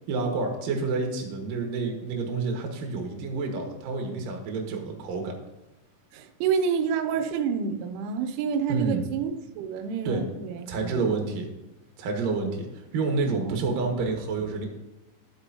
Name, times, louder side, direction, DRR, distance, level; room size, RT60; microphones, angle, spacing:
voice 1, 0.1-5.3 8.7-9.0 10.0-10.2 10.7-11.5 12.0-14.7, right 4 dB, 60° right, 2.7 m, -29 dB
voice 2, 6.1-11.2 13.3-13.8, right 6 dB, 90° right, 3.2 m, -29 dB
12.5 x 8.1 x 2.8 m
omnidirectional pair, 5.5 m